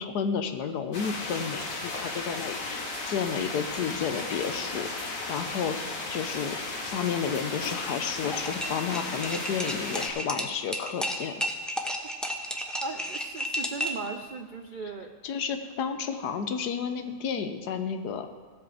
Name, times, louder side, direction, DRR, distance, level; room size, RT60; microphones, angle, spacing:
voice 1, 0.0-6.6 6.8-11.4 15.2-18.3, left 7 dB, 80° left, 8 dB, 1.4 m, -31 dB
sound 1, 0.9-10.1, left 3 dB, 55° left, 1.8 m, -35 dB
sound 2, 8.3-14.1, equal, ahead, 0.4 m, -33 dB
voice 2, 12.8-15.2, right 4 dB, 70° right, 5 dB, 0.4 m, -37 dB
15.5 x 5.2 x 7.4 m, 1.5 s
omnidirectional pair, 1.7 m